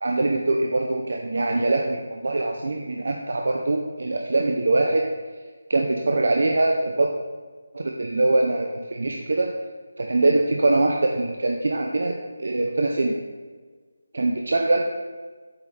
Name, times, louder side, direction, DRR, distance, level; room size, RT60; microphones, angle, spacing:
voice 1, 0.0-5.0 5.7-7.1 7.7-9.5 10.0-13.2 14.1-14.8, right 2 dB, 55° right, 2 dB, 0.7 m, -23 dB
8.1 x 7.0 x 3.3 m, 1.5 s
figure-of-eight pair, 175°, 0 cm